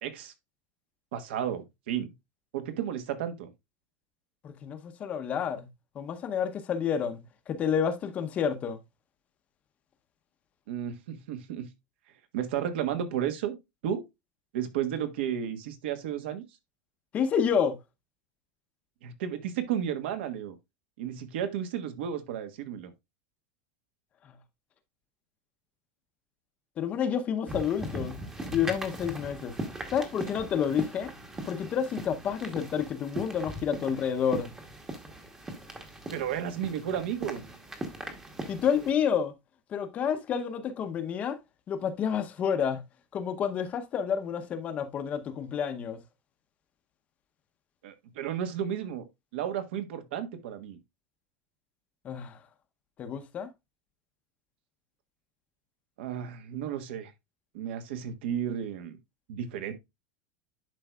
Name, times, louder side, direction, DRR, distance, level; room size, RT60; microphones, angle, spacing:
voice 1, 0.0-0.3 1.1-2.1 2.5-3.5 10.7-11.7 12.3-13.6 13.8-14.0 14.5-16.4 19.0-20.6 21.0-22.9 36.1-37.4 47.8-49.0 49.3-50.8 56.0-57.1 57.5-59.0 59.3-59.7, right 9 dB, 75° right, 1.3 m, -33 dB
voice 2, 4.4-5.7 5.9-8.8 17.1-17.8 24.3-24.4 26.8-28.2 28.5-29.5 29.9-31.1 31.5-34.5 38.5-39.3 39.7-41.4 41.7-42.8 43.1-46.0 52.0-52.4 53.0-53.5, left 7 dB, 25° left, 0.7 m, -29 dB
sound 1, 27.5-38.9, right 1 dB, 10° right, 0.9 m, -40 dB
11.0 x 4.5 x 2.3 m
supercardioid pair, 175°, 6 cm